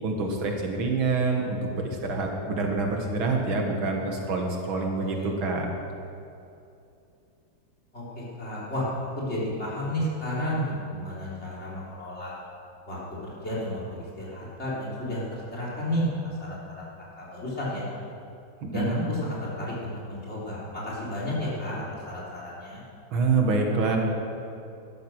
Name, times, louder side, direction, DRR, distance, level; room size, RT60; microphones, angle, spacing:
voice 1, 0.0-5.7 18.7-19.1 23.1-24.0, right 3 dB, 85° right, 2 dB, 2.4 m, -26 dB
voice 2, 7.9-8.9 9.2-12.4 12.9-17.8 18.7-22.8, left 1 dB, 30° left, -6 dB, 4.1 m, -32 dB
13.0 x 12.0 x 6.4 m, 2.6 s
omnidirectional pair, 2.2 m